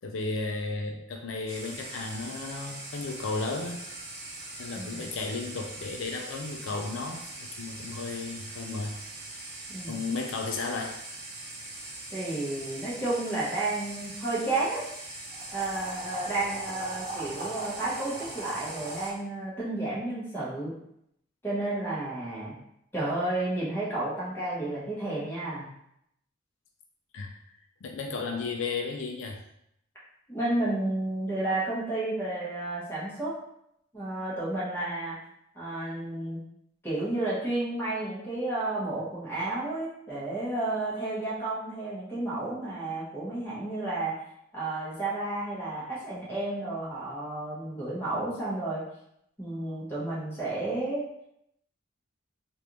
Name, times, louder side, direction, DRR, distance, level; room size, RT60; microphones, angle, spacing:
voice 1, 0.0-3.8 4.6-9.0 9.9-11.0 27.1-27.4 27.8-29.4, left 3 dB, 85° left, 2 dB, 0.4 m, -34 dB
sound 1, 1.5-19.1, right 2 dB, 50° right, 0.8 m, -40 dB
voice 2, 9.7-10.0 12.1-14.8 15.5-20.7 21.4-22.5 22.9-25.7 30.3-33.3 33.9-35.2 35.5-36.4 36.8-44.1 44.5-48.8 49.4-51.0, right 2 dB, 10° left, -8 dB, 1.2 m, -31 dB
3.3 x 2.5 x 3.0 m, 0.76 s
head